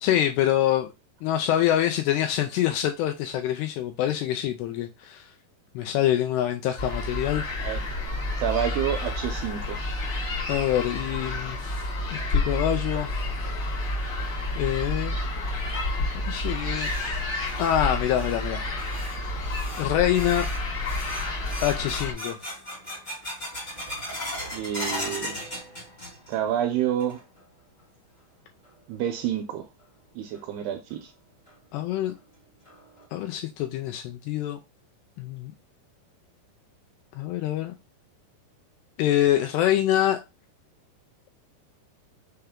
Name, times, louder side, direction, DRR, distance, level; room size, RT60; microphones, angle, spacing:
voice 1, 0.0-0.9 1.2-5.3 5.8-7.4 10.5-11.8 12.1-13.1 14.6-15.2 16.3-16.9 17.6-18.6 19.8-20.5 21.6-22.4 31.7-32.1 33.1-34.6 35.2-35.5 37.2-37.7 39.0-40.2, left 12 dB, 85° left, 2.3 m, -25 dB
sound 1, 6.8-22.1, left 2 dB, 65° left, 1.0 m, -30 dB
voice 2, 8.4-9.8 24.5-25.4 26.3-27.2 28.9-29.7 30.2-31.1, right 10 dB, 85° right, 2.3 m, -28 dB
sound 2, 16.8-26.5 26.8-27.4 27.8-27.9 28.6-28.7 30.3-30.4 30.9-31.0 31.5-31.6 32.0-32.1 32.6-33.0, left 1 dB, 45° left, 0.7 m, -38 dB
6.6 x 2.3 x 3.5 m
omnidirectional pair, 5.0 m